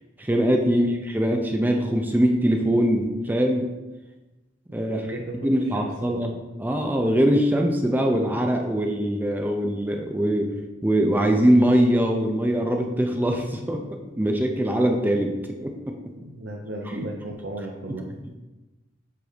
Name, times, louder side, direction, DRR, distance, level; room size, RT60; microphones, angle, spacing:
voice 1, 0.2-3.7 4.7-10.5 10.8-13.8 14.2-15.3 15.6-15.9 16.9-17.1 17.9-18.0, equal, 10° right, 3 dB, 0.5 m, -22 dB
voice 2, 4.7-6.1 16.1-18.1, right 1 dB, 85° right, -1 dB, 0.7 m, -36 dB
7.7 x 2.6 x 4.9 m, 1.1 s
head